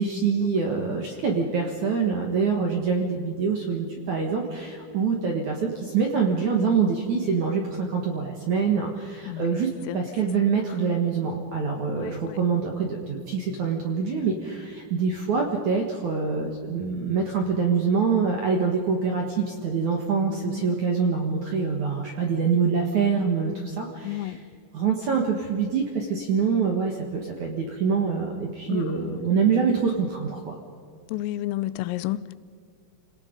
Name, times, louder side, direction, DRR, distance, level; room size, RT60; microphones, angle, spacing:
voice 1, 0.0-24.4 24.7-30.6, right 5 dB, 60° right, 1 dB, 2.0 m, -25 dB
voice 2, 9.3-10.0 10.4-10.5 11.9-12.4 20.6-20.9 24.0-24.4 28.7-29.2 31.1-32.3, left 15 dB, 90° left, 16 dB, 3.3 m, -32 dB
29.5 x 18.5 x 5.3 m, 2.3 s
omnidirectional pair, 5.8 m